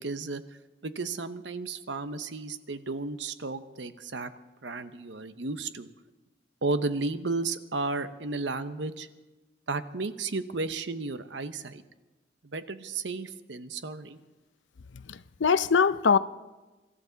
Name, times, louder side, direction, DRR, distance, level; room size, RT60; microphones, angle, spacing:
voice 1, 0.0-4.3 4.6-5.9 6.6-9.1 9.7-11.8 12.4-14.2, right 3 dB, 80° right, 0.9 m, -33 dB
voice 2, 15.1-16.2, left 6 dB, 90° left, 0.6 m, -22 dB
24.5 x 13.5 x 4.0 m
head